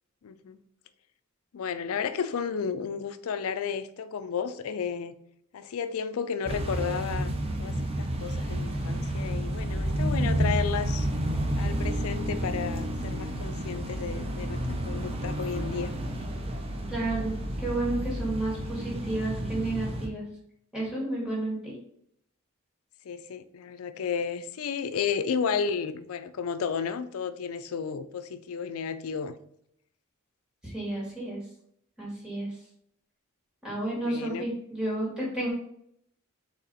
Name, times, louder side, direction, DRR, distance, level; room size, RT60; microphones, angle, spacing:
voice 1, 0.2-0.6 1.5-5.1 5.5-11.1 11.6-15.9 23.0-29.4 34.0-34.5, left 6 dB, 70° left, 0.4 m, -33 dB
sound 1, 6.4-20.1, right 1 dB, 25° right, 0.6 m, -30 dB
voice 2, 16.9-20.2 20.7-21.7 30.6-31.4 32.0-32.5 33.6-35.5, right 2 dB, 5° right, 1.9 m, -31 dB
4.2 x 3.1 x 4.0 m
head